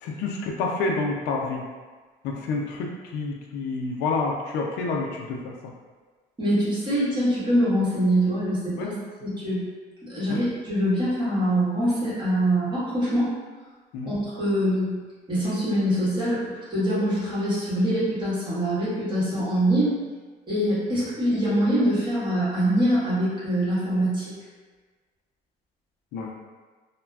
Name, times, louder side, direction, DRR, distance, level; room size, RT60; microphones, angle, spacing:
voice 1, 0.0-1.6 2.2-5.5 8.8-8.9 10.3-10.4 13.9-14.1 26.1-26.3, left 3 dB, 90° left, 0 dB, 0.4 m, -28 dB
voice 2, 6.4-9.6 10.0-13.3 14.0-15.0 15.3-16.4 16.7-19.9 20.5-24.3, equal, 25° right, -10 dB, 1.4 m, -24 dB
3.1 x 2.1 x 2.3 m, 1.4 s
cardioid pair, 110°, 17 cm